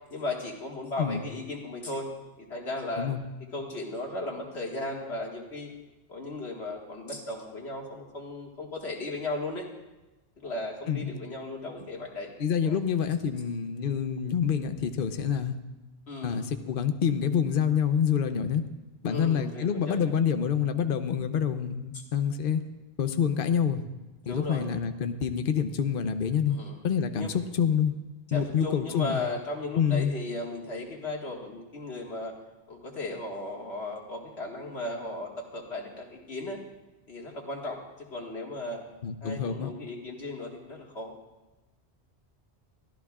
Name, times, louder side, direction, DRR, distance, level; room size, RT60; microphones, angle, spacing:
voice 1, 0.1-2.1 2.4-3.1 3.5-5.7 6.1-9.7 10.4-12.3 12.6-12.8 16.1-16.4 19.1-20.1 24.2-24.7 26.5-26.8 27.2-27.3 28.3-32.3 32.7-36.6 37.1-38.8 39.2-41.1, left 2 dB, 85° left, -1 dB, 2.1 m, -36 dB
voice 2, 12.4-15.6 16.2-18.6 19.0-22.6 23.0-23.8 24.3-26.6 26.8-27.9 28.3-29.2 29.7-30.1 39.0-39.7, left 7 dB, 60° left, 9 dB, 0.9 m, -27 dB
22.5 x 14.0 x 2.4 m, 1.1 s
omnidirectional pair, 1.1 m